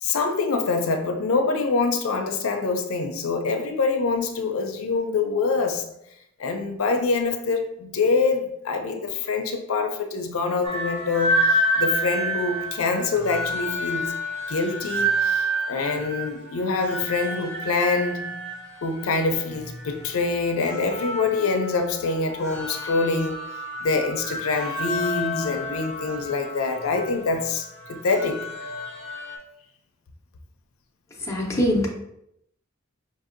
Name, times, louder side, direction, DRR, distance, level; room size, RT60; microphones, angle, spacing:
voice 1, 0.0-5.8 6.4-14.1 14.5-18.5 18.8-23.4 23.8-28.5, left 4 dB, 80° left, 0.5 m, -25 dB
sound 1, 10.6-29.4, right 1 dB, 55° right, 0.7 m, -29 dB
voice 2, 31.3-31.9, equal, 15° left, 0.6 m, -22 dB
5.2 x 2.6 x 2.5 m
head